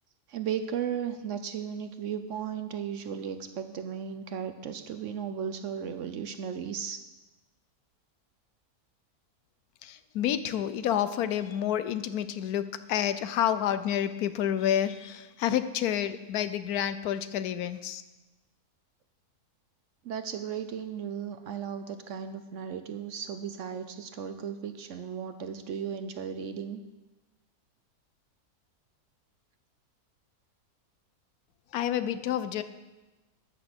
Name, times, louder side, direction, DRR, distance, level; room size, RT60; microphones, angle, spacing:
voice 1, 0.3-7.0 20.0-26.8, right 8 dB, 60° right, 8 dB, 0.9 m, -35 dB
voice 2, 9.8-18.0 31.7-32.6, left 10 dB, 80° left, 12 dB, 1.2 m, -29 dB
13.0 x 6.0 x 6.7 m, 1.1 s
omnidirectional pair, 1.6 m